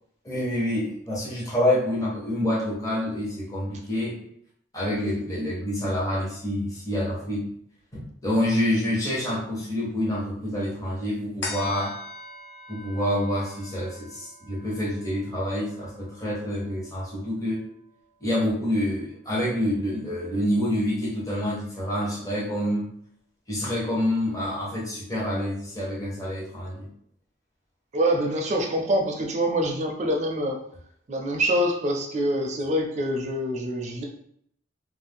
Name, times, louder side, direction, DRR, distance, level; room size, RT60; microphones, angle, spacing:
voice 1, 0.2-4.1 4.7-7.4 7.9-11.9 12.7-17.6 18.2-22.8 23.5-26.9, left 1 dB, 20° left, -6 dB, 0.8 m, -27 dB
sound 1, 11.4-18.2 18.6-18.7, left 3 dB, 70° left, 0.6 m, -42 dB
voice 2, 27.9-30.6 31.1-34.0, equal, 40° right, 1 dB, 0.4 m, -25 dB
2.6 x 2.0 x 3.3 m, 0.69 s
head